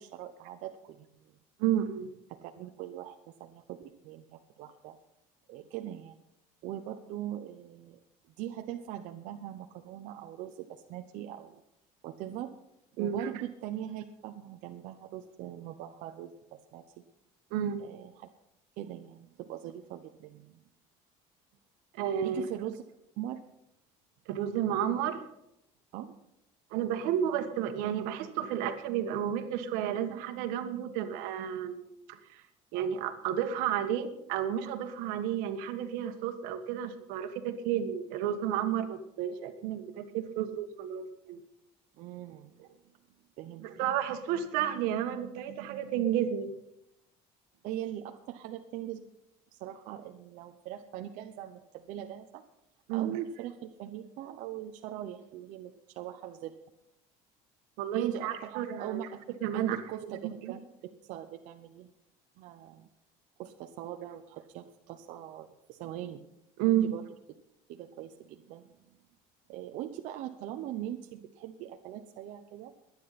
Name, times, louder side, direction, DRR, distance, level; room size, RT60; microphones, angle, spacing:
voice 1, 0.0-1.3 2.3-5.0 5.5-6.2 6.6-8.0 8.4-11.6 12.0-12.5 13.0-17.0 17.8-18.3 18.8-20.6 22.2-22.8 23.2-23.4 25.9-26.1 42.0-42.5 43.4-43.7 47.6-49.0 49.6-52.4 52.9-56.6 57.9-59.2 59.5-61.9 62.4-62.9 63.4-66.2 66.9-67.0 67.7-69.0 69.5-72.7, right 12 dB, 65° right, 5 dB, 0.8 m, -41 dB
voice 2, 1.6-2.1 13.0-13.3 17.5-17.8 21.9-22.4 24.3-25.2 26.7-31.8 32.1-32.4 32.7-41.4 43.6-46.5 52.9-53.2 57.8-59.1 59.4-60.5 66.6-66.9, right 10 dB, 85° right, 8 dB, 1.5 m, -31 dB
22.0 x 9.8 x 4.2 m, 0.83 s
cardioid pair, 155°, 14 cm